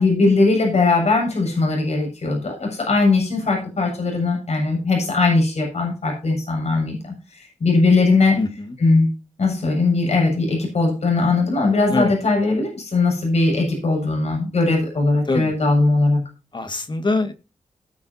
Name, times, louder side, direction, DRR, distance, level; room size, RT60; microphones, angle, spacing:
voice 1, 0.0-7.0 7.6-8.4 8.8-9.1 9.4-16.2, left 3 dB, 65° left, 0 dB, 7.2 m, -19 dB
voice 2, 8.4-8.8 11.9-12.1 15.3-15.5 16.5-17.3, left 2 dB, 40° left, 8 dB, 1.9 m, -23 dB
19.5 x 7.8 x 2.8 m, 0.31 s
wide cardioid pair, 85°, 12 cm